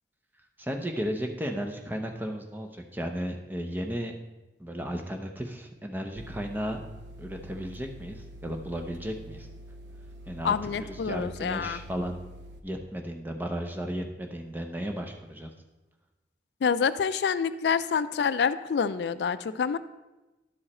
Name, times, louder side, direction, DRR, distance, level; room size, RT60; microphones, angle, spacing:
voice 1, 0.6-4.2 4.6-6.8 7.2-9.5 10.3-12.2 12.6-15.5, equal, 10° right, 4 dB, 0.7 m, -34 dB
sound 1, 6.2-12.6, right 1 dB, 85° right, 0.7 m, -46 dB
voice 2, 10.4-11.8 16.6-19.8, left 6 dB, 70° left, 14 dB, 0.3 m, -27 dB
11.0 x 4.7 x 4.2 m, 1.1 s
head